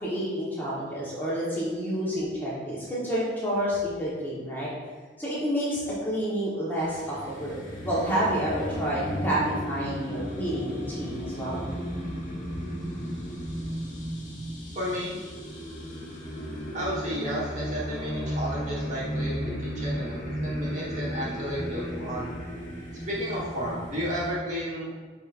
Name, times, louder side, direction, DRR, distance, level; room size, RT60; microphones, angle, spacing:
voice 1, 0.0-4.7 5.2-11.7, equal, 10° left, -8 dB, 1.3 m, -29 dB
sound 1, 6.8-24.3, equal, 40° left, 1.3 m, -34 dB
voice 2, 14.7-15.1 16.7-20.2 20.4-22.3 23.1-24.9, equal, 35° right, -6 dB, 1.5 m, -32 dB
8.6 x 4.2 x 2.6 m, 1.4 s
head